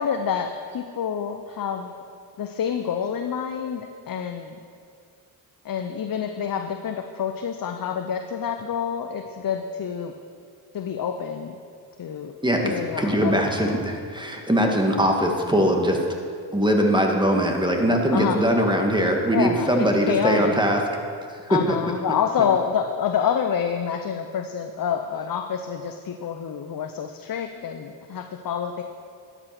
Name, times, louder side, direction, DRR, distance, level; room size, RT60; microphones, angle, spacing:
voice 1, 0.0-1.9 2.4-4.6 5.6-10.1 10.7-11.6 12.0-12.4 12.6-13.8 18.1-18.4 19.3-20.6 21.5-28.8, left 7 dB, 45° left, 6 dB, 0.8 m, -27 dB
voice 2, 12.4-16.0 16.5-20.8 21.3-21.8, equal, 10° right, 2 dB, 2.1 m, -21 dB
11.5 x 8.2 x 6.1 m, 2.2 s
supercardioid pair, 60°, 48 cm